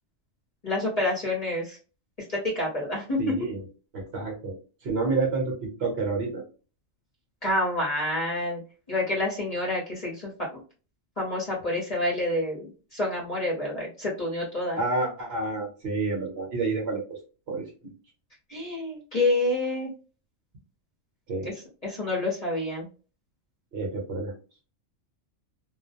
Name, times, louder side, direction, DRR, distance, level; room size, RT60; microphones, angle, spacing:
voice 1, 0.6-1.8 2.3-3.3 7.4-8.6 8.9-10.6 11.2-14.8 18.5-19.9 21.4-22.9, left 1 dB, 35° left, -5 dB, 0.8 m, -28 dB
voice 2, 3.2-3.6 3.9-4.5 4.8-6.4 14.8-17.0 17.5-17.6 21.3-21.5 23.7-24.3, right 3 dB, 55° right, -1 dB, 0.9 m, -29 dB
2.3 x 2.0 x 2.5 m, 0.36 s
omnidirectional pair, 1.4 m